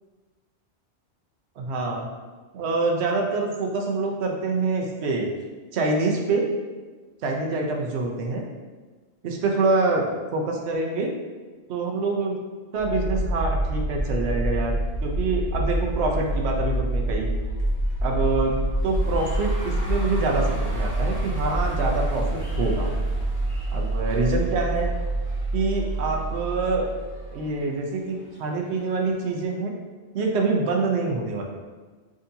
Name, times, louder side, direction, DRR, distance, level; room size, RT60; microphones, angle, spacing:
voice 1, 1.6-2.1 2.5-5.3 5.7-6.4 7.2-8.4 9.2-10.1 10.3-11.1 11.7-12.4 12.7-17.3 18.0-18.5 18.8-22.9 23.7-24.9 25.5-26.9 27.3-29.7 30.1-31.4, right 3 dB, 75° right, 1 dB, 0.9 m, -25 dB
sound 1, 12.8-27.6, right 1 dB, 70° left, 1.0 m, -26 dB
sound 2, 14.6-29.4, right 1 dB, 20° left, 1.1 m, -45 dB
6.2 x 2.7 x 2.6 m, 1.3 s
omnidirectional pair, 1.1 m